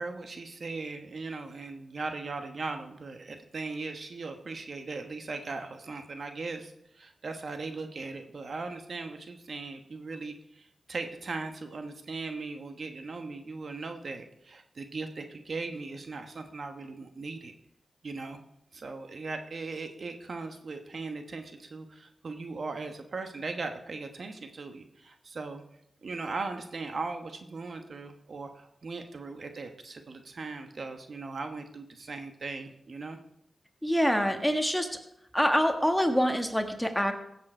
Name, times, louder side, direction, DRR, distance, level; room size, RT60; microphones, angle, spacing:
voice 1, 0.0-17.5 18.0-18.4 18.7-25.6 26.0-33.2, right 3 dB, 60° right, 6 dB, 1.1 m, -38 dB
voice 2, 33.8-34.9 35.3-37.1, equal, 5° left, 5 dB, 1.4 m, -25 dB
16.0 x 7.4 x 4.4 m, 0.79 s
cardioid pair, 65°, 0 cm